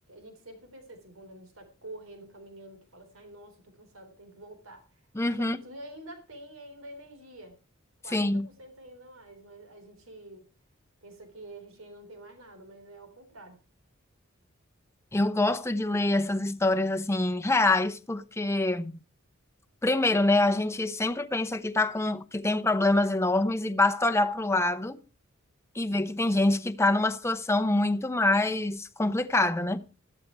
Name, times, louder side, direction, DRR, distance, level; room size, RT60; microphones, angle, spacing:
voice 1, 0.0-5.0 5.4-7.6 8.0-10.4 11.0-13.6, right 1 dB, 90° right, 3.9 m, -48 dB
voice 2, 5.1-5.6 8.1-8.5 15.1-19.0 19.8-25.0 25.7-29.8, left 2 dB, 15° left, 0.8 m, -25 dB
14.0 x 12.0 x 4.6 m
head